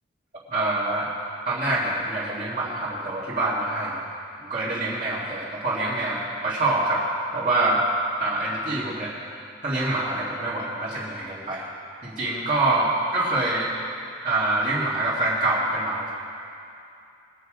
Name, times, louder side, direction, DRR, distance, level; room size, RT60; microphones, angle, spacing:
voice 1, 0.5-1.1 1.4-4.0 4.5-7.1 7.3-7.8 8.2-9.1 9.6-11.7 12.0-13.7 14.2-16.1, right 2 dB, 40° right, -10 dB, 2.1 m, -25 dB
21.5 x 8.2 x 5.0 m, 2.6 s
head